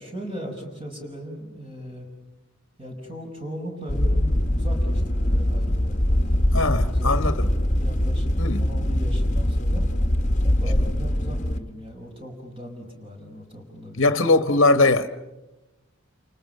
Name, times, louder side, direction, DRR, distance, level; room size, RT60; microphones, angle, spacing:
voice 1, 0.0-2.1 2.8-9.9 10.4-14.4, equal, 25° right, 5.3 m, -38 dB
sound 1, 3.9-11.6, left 1 dB, 35° left, 1.4 m, -22 dB
voice 2, 6.5-7.5 8.4-8.6 14.0-15.2, left 3 dB, 60° left, 1.3 m, -20 dB
30.0 x 29.5 x 6.7 m
head